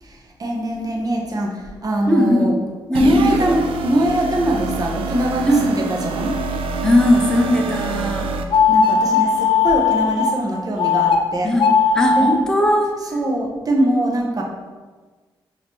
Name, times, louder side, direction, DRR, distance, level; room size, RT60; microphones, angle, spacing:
voice 1, 0.0-2.5 2.9-6.4 8.7-11.5 12.2-12.3 13.1-14.4, right 1 dB, 40° right, 0 dB, 0.9 m, -22 dB
voice 2, 2.1-2.5 2.9-3.3 5.5-5.7 6.8-8.3 11.4-12.9, equal, 5° left, 1 dB, 0.8 m, -18 dB
sound 1, 2.9-8.4, right 4 dB, 70° right, 0.4 m, -26 dB
sound 2, 8.5-10.3 10.8-11.2 11.5-12.4, left 6 dB, 55° left, 0.5 m, -17 dB
5.0 x 2.9 x 3.0 m, 1.4 s
supercardioid pair, 55°, 10 cm